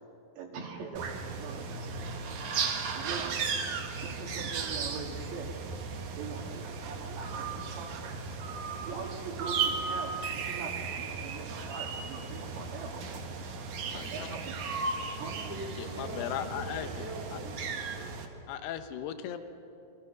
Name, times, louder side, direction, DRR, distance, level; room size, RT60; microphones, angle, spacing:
voice 1, 0.4-2.4 3.0-3.6 3.9-5.6 6.2-8.1 8.8-13.2 13.9-14.8 15.2-15.3, right 5 dB, 80° right, -2 dB, 4.3 m, -42 dB
sound 1, 1.0-18.3, right 5 dB, 55° right, 2.5 m, -36 dB
voice 2, 15.3-17.6, equal, 5° right, 1 dB, 2.0 m, -42 dB
voice 3, 15.8-16.9 18.5-19.4, left 10 dB, 75° left, 9 dB, 2.9 m, -37 dB
28.0 x 23.5 x 6.0 m, 2.7 s
omnidirectional pair, 5.2 m